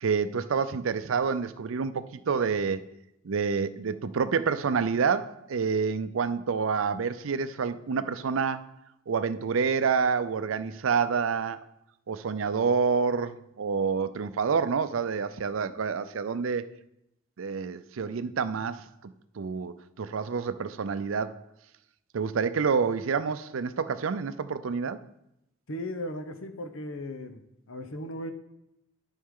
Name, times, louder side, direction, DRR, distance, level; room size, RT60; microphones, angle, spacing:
voice 1, 0.0-2.8 3.2-8.7 9.1-11.6 12.1-16.6 17.4-21.4 22.1-25.0, right 5 dB, 75° right, 0.5 m, -28 dB
voice 2, 25.7-27.4 27.7-28.3, left 1 dB, 80° left, 0.9 m, -36 dB
11.5 x 5.4 x 3.8 m
head